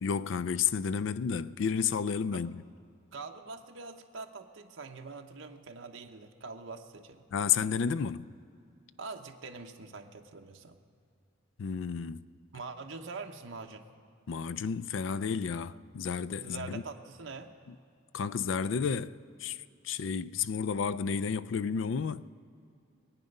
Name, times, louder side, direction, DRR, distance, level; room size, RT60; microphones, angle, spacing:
voice 1, 0.0-2.6 7.3-8.3 11.6-12.2 14.3-16.8 17.7-17.8 18.1-19.6 19.8-22.2, left 6 dB, 70° left, 0.4 m, -31 dB
voice 2, 3.1-7.2 9.0-10.8 12.5-13.9 16.4-17.5, right 4 dB, 75° right, 0.9 m, -44 dB
24.0 x 9.0 x 5.4 m
head